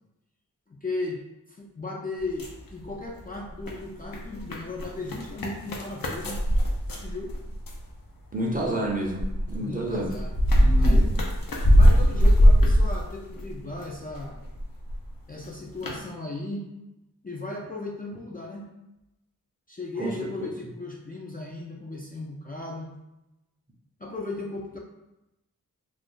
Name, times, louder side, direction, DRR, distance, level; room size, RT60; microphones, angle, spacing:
voice 1, 0.7-1.2 1.5-6.4 7.0-7.3 9.6-10.3 10.8-11.1 11.7-14.4 15.3-16.7 17.2-18.7 19.7-22.9 24.0-24.8, left 2 dB, 25° left, -3 dB, 0.4 m, -36 dB
sound 1, 2.2-3.2 3.5-7.9 8.5-13.8 14.1-15.1 15.4-15.5 15.8-16.0, equal, 65° left, 0.6 m, -21 dB
voice 2, 8.3-10.1 10.5-11.2 20.0-20.5, right 1 dB, 25° right, -1 dB, 0.6 m, -30 dB
2.5 x 2.4 x 3.6 m, 0.94 s
wide cardioid pair, 70°, 36 cm